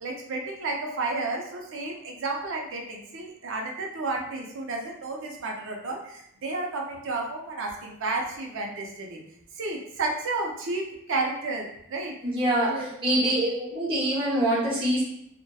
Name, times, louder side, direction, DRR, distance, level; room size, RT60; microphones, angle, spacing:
voice 1, 0.0-9.2 9.6-12.1 12.7-12.9, right 3 dB, 55° right, 0 dB, 0.5 m, -32 dB
voice 2, 12.2-15.0, right 1 dB, 25° right, -7 dB, 0.7 m, -25 dB
2.7 x 2.1 x 2.2 m, 0.74 s
head